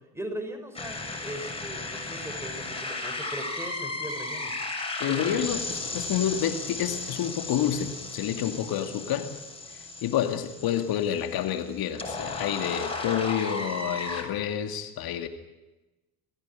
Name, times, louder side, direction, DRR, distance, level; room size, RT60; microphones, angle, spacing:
voice 1, 0.1-4.5 5.1-5.4, right 1 dB, 5° right, 6 dB, 5.6 m, -39 dB
sound 1, 0.7-14.2, left 3 dB, 10° left, 7.0 m, -35 dB
voice 2, 5.0-9.3 10.0-15.3, left 10 dB, 50° left, 7 dB, 2.4 m, -29 dB
28.5 x 16.0 x 9.9 m, 1.1 s
figure-of-eight pair, 65°, 48 cm